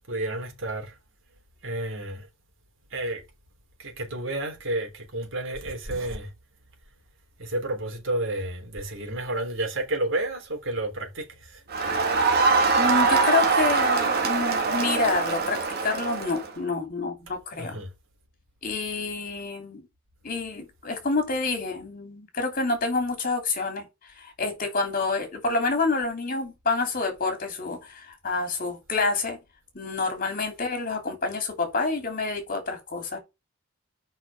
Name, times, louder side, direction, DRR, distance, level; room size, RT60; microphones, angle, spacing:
voice 1, 0.1-0.9 1.6-2.3 2.9-3.2 3.8-6.3 7.4-11.6 17.6-17.9, right 1 dB, 65° right, 3.2 m, -31 dB
Crowd, 11.7-16.5, right 4 dB, 50° right, 1.8 m, -23 dB
voice 2, 12.8-15.6 15.8-17.8 18.6-19.8 20.2-23.9 24.2-29.4 29.7-33.2, left 3 dB, 45° left, 2.9 m, -28 dB
7.0 x 5.6 x 5.5 m
head